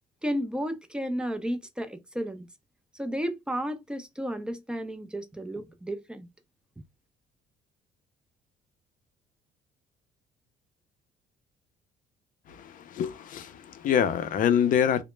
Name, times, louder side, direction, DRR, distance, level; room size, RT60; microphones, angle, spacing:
voice 1, 0.2-2.5 2.9-6.3, equal, 5° right, 0.4 m, -33 dB
voice 2, 12.5-15.0, left 8 dB, 55° left, 0.5 m, -25 dB
2.0 x 2.0 x 3.1 m
cardioid pair, 110°, 17 cm